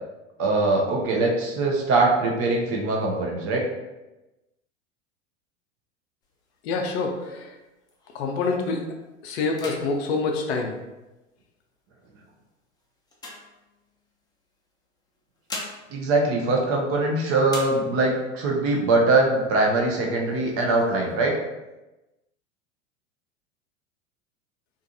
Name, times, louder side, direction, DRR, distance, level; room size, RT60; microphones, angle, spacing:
voice 1, 0.4-3.7 15.9-21.4, right 2 dB, 40° right, 0 dB, 0.6 m, -22 dB
sound 1, 6.2-8.4 8.9-9.1 9.4-11.4 12.0-14.2 15.1-17.1 17.4-18.3 18.7-18.8 19.1-19.8 20.2-21.1, left 2 dB, 10° left, 0.5 m, -42 dB
voice 2, 6.6-7.5 8.1-8.9 9.2-10.7, left 4 dB, 60° left, 2 dB, 0.6 m, -26 dB
2.5 x 2.4 x 2.6 m, 1.0 s
hypercardioid pair, 90°, 37 cm